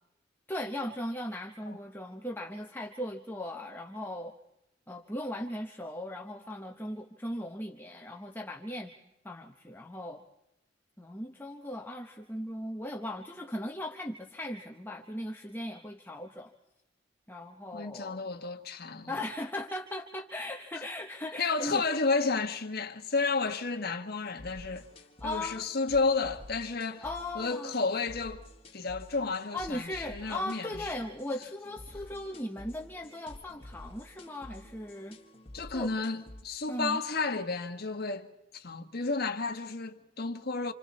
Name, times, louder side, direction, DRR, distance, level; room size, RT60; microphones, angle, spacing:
voice 1, 0.5-4.3 4.9-8.9 9.2-10.2 11.0-16.5 17.3-18.3 19.1-21.8 25.2-25.6 27.0-27.7 29.5-35.2 35.7-35.9 36.7-37.0, left 1 dB, 10° left, 1.1 m, -38 dB
voice 2, 17.7-19.1 21.4-24.9 25.2-27.0 27.3-28.5 28.7-30.9 35.5-40.7, left 4 dB, 55° left, 1.5 m, -32 dB
sound 1, 24.2-36.4, left 1 dB, 30° left, 1.7 m, -50 dB
27.5 x 27.0 x 4.2 m
head